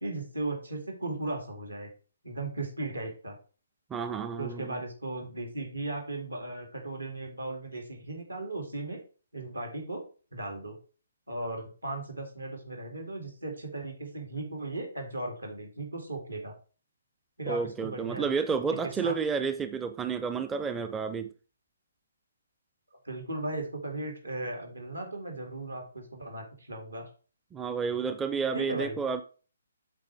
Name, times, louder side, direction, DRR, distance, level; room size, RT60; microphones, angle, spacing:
voice 1, 0.0-1.9 2.2-3.4 4.4-9.0 9.3-10.0 10.3-10.8 11.3-16.5 17.4-18.3 19.0-19.2 23.0-27.1 28.5-29.0, right 2 dB, 85° right, 2.3 m, -36 dB
voice 2, 3.9-4.7 17.5-21.3 27.5-29.2, right 5 dB, 10° right, 0.4 m, -31 dB
7.6 x 3.8 x 4.5 m
figure-of-eight pair, 135°, 0 cm